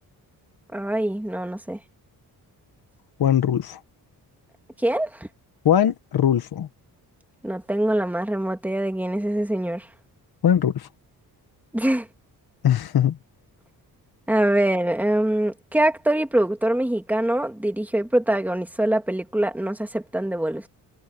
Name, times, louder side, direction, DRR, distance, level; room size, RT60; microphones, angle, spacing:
voice 1, 0.7-1.8 4.8-5.3 7.4-9.9 11.7-12.1 14.3-20.7, right 1 dB, 5° right, 2.5 m, -24 dB
voice 2, 3.2-3.8 5.7-6.7 10.4-10.9 12.6-13.2, left 10 dB, 70° left, 1.7 m, -20 dB
cardioid pair, 100°, 39 cm